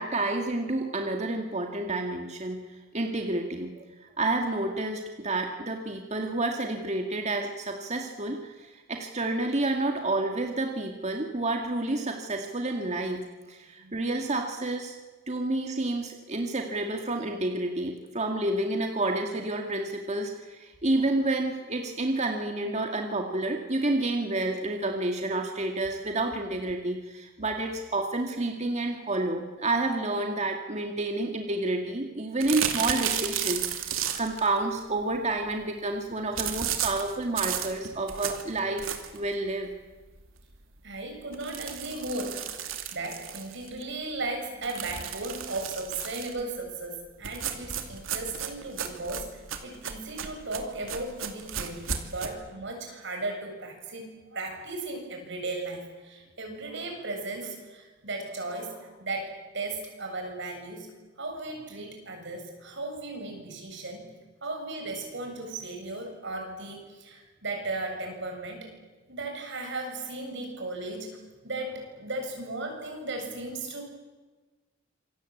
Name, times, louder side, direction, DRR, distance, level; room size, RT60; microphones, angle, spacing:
voice 1, 0.0-2.6 2.9-13.2 13.5-15.0 15.3-39.7, right 2 dB, 35° right, 3 dB, 2.0 m, -29 dB
sound 1, 32.4-34.5 36.4-39.3 39.7-39.8 40.2-40.3 40.5-40.6 41.3-43.8 44.6-46.4 47.2-52.3, right 8 dB, 80° right, 2.7 m, -33 dB
voice 2, 40.8-42.4 42.9-60.9 61.2-64.1 64.4-68.7 69.1-71.1 71.4-73.8, right 2 dB, 60° right, 3 dB, 7.3 m, -36 dB
27.0 x 22.5 x 8.6 m, 1.3 s
head